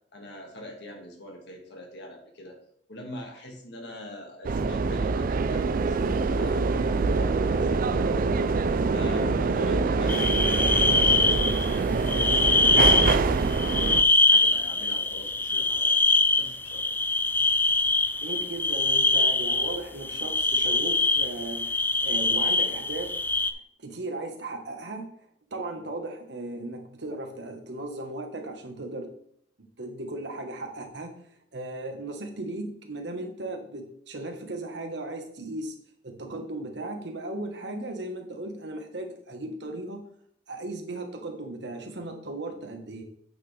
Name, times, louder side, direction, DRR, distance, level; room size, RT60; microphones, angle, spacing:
voice 1, 0.1-2.6 2.9-14.0 14.3-15.9 16.4-16.8 25.8-25.9, equal, 65° left, 1 dB, 2.0 m, -43 dB
sound 1, 4.4-14.0, right 4 dB, 50° right, 0.4 m, -25 dB
sound 2, 10.1-11.8 12.1-13.2 13.4-23.5, left 3 dB, 10° left, 0.4 m, -23 dB
voice 2, 18.2-23.1 23.8-25.1 25.5-29.1 29.8-31.2 31.5-35.7 36.0-40.0 40.5-43.0, right 2 dB, 70° right, 4 dB, 1.3 m, -36 dB
8.4 x 5.8 x 3.3 m, 0.66 s
head